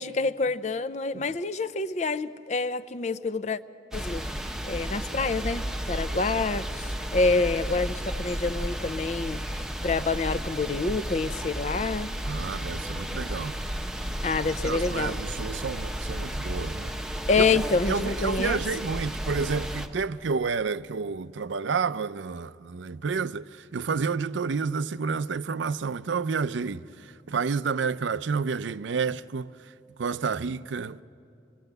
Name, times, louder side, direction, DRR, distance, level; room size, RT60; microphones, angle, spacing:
voice 1, 0.0-3.6 3.9-9.4 9.8-12.1 14.2-15.2 17.3-18.6, left 3 dB, 40° left, 0.5 m, -27 dB
sound 1, 3.9-19.9, equal, 5° right, 1.0 m, -33 dB
voice 2, 12.2-13.6 14.3-16.9 17.4-17.6 17.9-29.5 30.0-31.0, right 5 dB, 85° right, 0.5 m, -30 dB
27.0 x 21.5 x 8.0 m
head